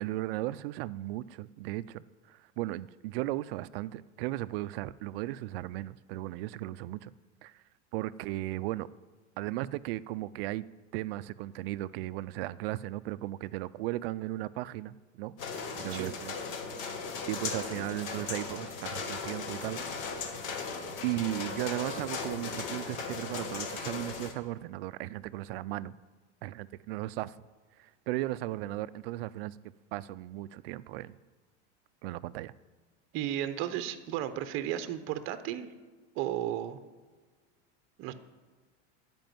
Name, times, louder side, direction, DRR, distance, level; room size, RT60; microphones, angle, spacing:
voice 1, 0.0-7.1 7.4-7.6 7.9-8.9 9.4-10.6 10.9-15.3 15.8-16.4 17.3-19.8 21.0-26.0 26.4-27.4 27.8-31.2 32.0-32.5, right 16 dB, 55° right, 17 dB, 0.5 m, -36 dB
sound 1, 15.4-24.3, left 5 dB, 45° left, 1.8 m, -37 dB
voice 2, 33.1-35.7 36.2-36.8 38.0-38.1, right 11 dB, 35° right, 11 dB, 0.8 m, -34 dB
13.0 x 5.3 x 9.2 m, 1.4 s
supercardioid pair, 160°, 35 cm